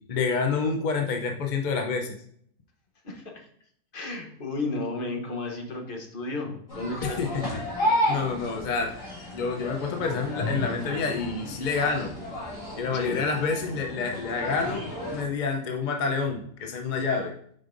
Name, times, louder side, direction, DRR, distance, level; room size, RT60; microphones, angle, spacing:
voice 1, 0.1-2.2 7.0-7.4 8.1-8.9 9.3-12.1 12.8-14.8 15.1-17.3, left 4 dB, 60° left, 3 dB, 0.5 m, -28 dB
voice 2, 3.0-3.5 3.9-7.5 12.9-13.2, left 2 dB, 40° left, 2 dB, 1.0 m, -33 dB
sound 1, 6.7-15.2, left 1 dB, 20° left, 2.5 m, -32 dB
7.4 x 5.1 x 2.5 m, 0.65 s
omnidirectional pair, 1.6 m